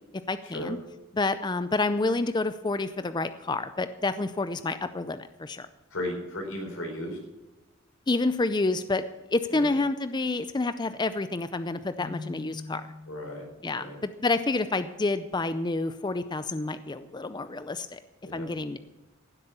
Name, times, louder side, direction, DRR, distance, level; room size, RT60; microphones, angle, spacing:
voice 1, 0.3-0.8 1.1-5.7 8.1-9.0 9.3-12.9 13.6-18.0 18.3-18.8, left 3 dB, 20° left, 12 dB, 0.5 m, -28 dB
voice 2, 5.9-7.2 9.5-9.7 13.1-13.4 13.7-14.0 18.2-18.5, left 1 dB, 90° left, 2 dB, 4.4 m, -35 dB
Keyboard (musical), 12.0-13.8, left 3 dB, 40° left, 1.3 m, -42 dB
15.5 x 7.8 x 7.1 m, 1.1 s
head